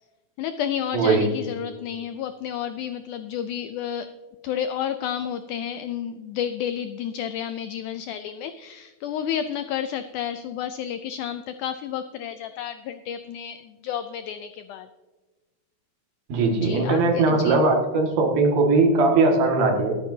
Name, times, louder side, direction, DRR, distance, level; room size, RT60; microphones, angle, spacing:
voice 1, 0.4-4.1 4.4-14.9 16.5-17.6, left 9 dB, 80° left, 9 dB, 1.8 m, -31 dB
voice 2, 0.9-1.3 16.3-20.0, right 3 dB, 80° right, 1 dB, 3.8 m, -20 dB
22.5 x 8.7 x 2.8 m, 1.3 s
omnidirectional pair, 4.2 m